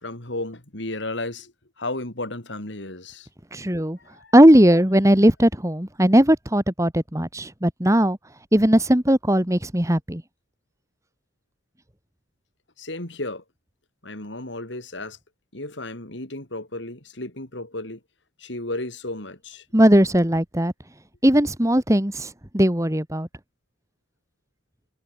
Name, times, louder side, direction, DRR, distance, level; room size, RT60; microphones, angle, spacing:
voice 1, 0.0-3.3 4.0-4.3 12.8-13.4 14.0-15.2 15.5-18.0 18.4-19.6, left 2 dB, 65° left, 3.9 m, -33 dB
voice 2, 3.5-4.0 4.3-8.2 8.5-10.2 19.7-20.7 21.2-23.3, equal, 15° right, 2.1 m, -18 dB
head